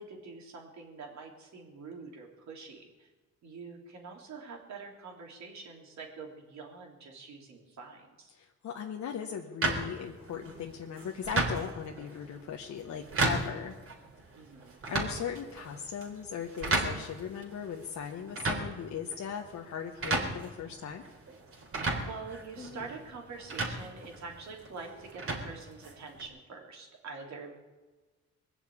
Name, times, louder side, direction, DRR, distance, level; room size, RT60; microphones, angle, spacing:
voice 1, 0.0-3.1 3.4-8.3 14.3-14.8 22.0-27.5, right 4 dB, 65° right, 1 dB, 3.6 m, -45 dB
voice 2, 8.3-13.8 14.9-21.0, left 7 dB, 65° left, 1 dB, 1.3 m, -38 dB
sound 1, 9.6-26.3, right 2 dB, 45° right, 3.8 m, -35 dB
21.5 x 7.3 x 8.6 m, 1.3 s
cardioid pair, 90°, 30 cm